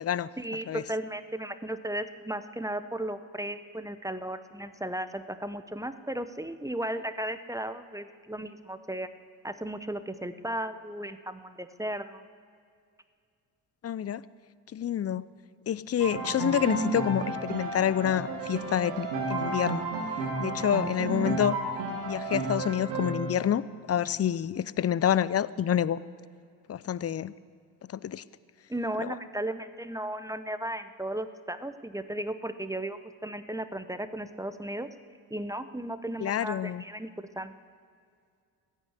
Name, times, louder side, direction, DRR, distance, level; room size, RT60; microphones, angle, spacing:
voice 1, 0.4-9.1 9.4-12.2 28.7-34.9 35.3-37.6, right 1 dB, 5° right, 11 dB, 0.9 m, -35 dB
voice 2, 13.8-14.2 14.7-15.2 15.7-19.8 20.4-21.6 22.1-23.6 23.9-26.0 26.7-27.3 27.9-28.2 29.0-29.1 36.2-36.8, left 10 dB, 30° left, 18 dB, 0.6 m, -28 dB
Piano, 16.0-23.3, right 3 dB, 90° right, 2.1 m, -32 dB
15.0 x 10.0 x 8.1 m, 2.2 s
hypercardioid pair, 45°, 50 cm